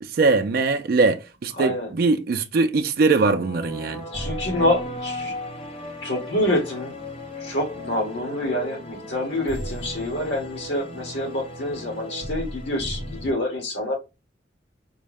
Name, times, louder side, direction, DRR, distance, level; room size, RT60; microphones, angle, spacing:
voice 1, 0.0-4.0, right 3 dB, 55° right, 0.4 m, -21 dB
voice 2, 1.6-1.9 4.1-5.3 6.0-6.9 7.4-14.0, left 1 dB, 90° left, 1.6 m, -26 dB
sound 1, 3.0-13.3, equal, 35° left, 0.7 m, -35 dB
4.5 x 2.1 x 3.3 m
head